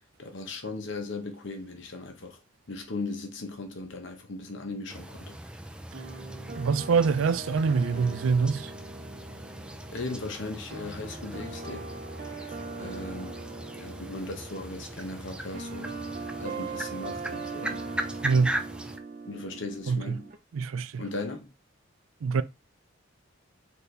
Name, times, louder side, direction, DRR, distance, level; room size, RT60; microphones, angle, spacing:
voice 1, 0.2-2.4 2.7-5.4 9.4-9.5 9.9-11.9 12.7-13.3 13.7-15.9 16.4-18.0 19.2-20.3 21.0-21.5, left 2 dB, 60° left, 0.9 m, -37 dB
sound 1, 4.9-19.0, right 1 dB, 5° right, 0.3 m, -39 dB
sound 2, 5.9-20.4, right 3 dB, 45° right, 0.6 m, -41 dB
voice 2, 6.5-8.7 18.2-18.5 19.9-20.2 20.5-21.0 22.2-22.4, right 5 dB, 85° right, 0.4 m, -25 dB
4.5 x 2.7 x 3.2 m
head